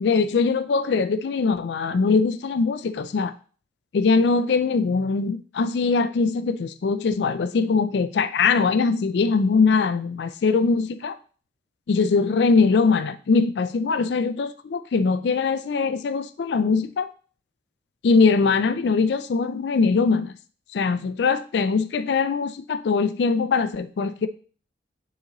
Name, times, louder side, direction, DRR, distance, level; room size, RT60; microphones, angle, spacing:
voice 1, 0.0-3.3 3.9-11.2 11.9-17.1 18.0-20.3 20.7-24.3, left 4 dB, 65° left, 12 dB, 0.4 m, -22 dB
9.0 x 3.9 x 3.0 m, 0.41 s
head